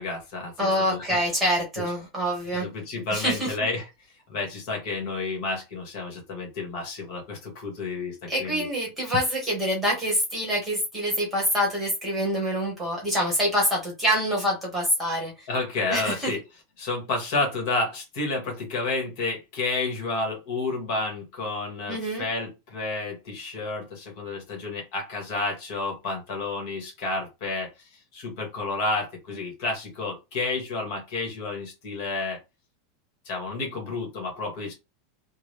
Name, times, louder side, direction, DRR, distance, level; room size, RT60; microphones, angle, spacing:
voice 1, 0.0-1.2 2.5-3.9 4.3-8.7 15.5-16.4 16.8-32.4 33.2-34.7, left 3 dB, 45° left, 1 dB, 1.7 m, -30 dB
voice 2, 0.6-2.6 3.1-3.5 8.3-15.4 15.9-16.3 21.9-22.2, equal, 10° right, -2 dB, 1.4 m, -26 dB
3.7 x 2.2 x 3.3 m, 0.25 s
supercardioid pair, 180°, 0 cm